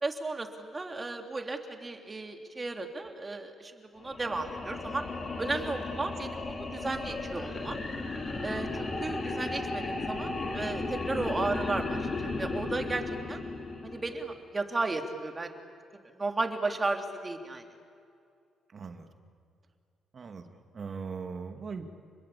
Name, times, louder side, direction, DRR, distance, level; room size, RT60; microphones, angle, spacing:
voice 1, 0.0-5.0 5.4-7.8 8.4-13.4 13.8-15.5 16.1-17.6, right 3 dB, 25° right, 4 dB, 3.3 m, -34 dB
sound 1, 4.0-14.3, left 3 dB, 35° left, 4.5 m, -35 dB
voice 2, 18.7-19.1 20.1-20.5 20.7-21.8, right 5 dB, 45° right, 6 dB, 2.4 m, -39 dB
29.5 x 21.5 x 8.6 m, 2.3 s
cardioid pair, 90°, 0 cm